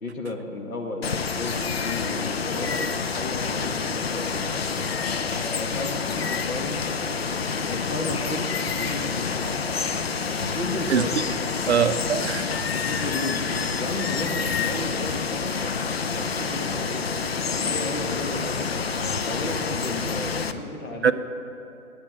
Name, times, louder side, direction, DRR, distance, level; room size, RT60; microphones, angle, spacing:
voice 1, 0.0-2.9 3.2-4.5 5.6-6.8 7.7-9.4 10.5-11.2 12.7-13.5 13.8-15.7 16.0-17.1 17.5-18.9 19.2-21.1, left 2 dB, 65° left, 2 dB, 1.6 m, -33 dB
Water, 1.0-20.5, left 5 dB, 45° left, 0.5 m, -28 dB
voice 2, 11.7-12.5 21.0-21.1, right 7 dB, 50° right, 12 dB, 0.5 m, -21 dB
8.8 x 8.7 x 7.4 m, 2.7 s
figure-of-eight pair, 140°, 44 cm